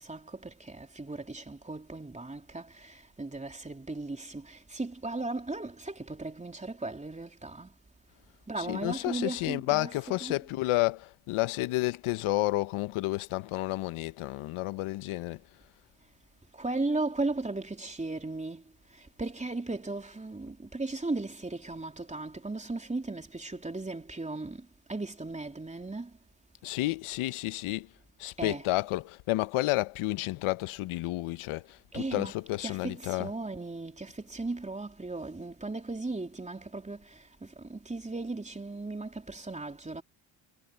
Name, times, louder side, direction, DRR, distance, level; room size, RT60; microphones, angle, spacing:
voice 1, 0.0-7.7 8.5-10.4 16.5-18.6 18.9-26.1 28.4-28.7 31.9-40.0, right 2 dB, 15° right, 3.3 m, -36 dB
voice 2, 8.6-15.4 26.6-27.9 28.2-33.3, left 18 dB, 80° left, 1.2 m, -31 dB
supercardioid pair, 70°, 50 cm